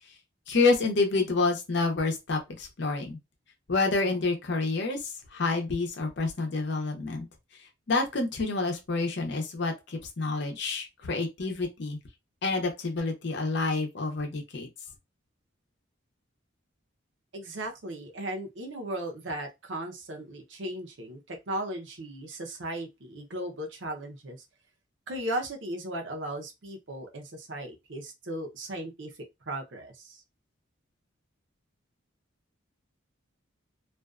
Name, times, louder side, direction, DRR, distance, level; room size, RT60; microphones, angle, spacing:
voice 1, 0.5-3.2 3.7-7.3 7.9-12.0 12.4-14.7, left 3 dB, 60° left, 0.7 m, -28 dB
voice 2, 17.3-24.4 25.1-29.1 29.5-30.2, right 1 dB, 65° right, 0.7 m, -36 dB
2.5 x 2.2 x 2.3 m
head